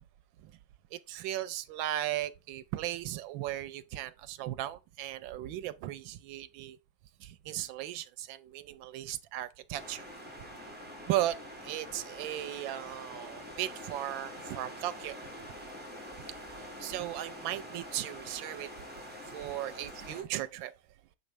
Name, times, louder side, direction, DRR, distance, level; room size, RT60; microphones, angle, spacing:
voice 1, 0.9-6.8 7.2-10.1 11.1-15.2 16.6-18.7 19.1-20.8, right 13 dB, 90° right, 1.3 m, -36 dB
sound 1, 9.7-20.2, equal, 5° right, 1.9 m, -45 dB
7.1 x 5.2 x 3.2 m
omnidirectional pair, 2.1 m